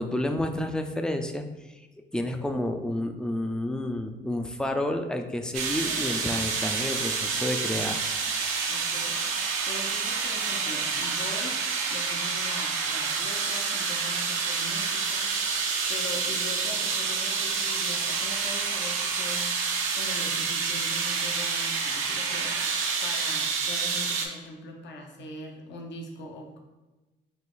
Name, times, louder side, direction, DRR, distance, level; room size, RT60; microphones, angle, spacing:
voice 1, 0.0-1.5 2.1-8.0, left 1 dB, 5° left, 6 dB, 0.3 m, -30 dB
sound 1, 5.5-24.3, right 5 dB, 90° right, 0.6 m, -28 dB
voice 2, 8.7-9.2 9.7-11.6 11.9-15.4 15.9-19.5 19.9-26.6, left 1 dB, 65° left, 1 dB, 0.8 m, -41 dB
4.1 x 2.4 x 3.8 m, 1.1 s
cardioid pair, 90°, 20 cm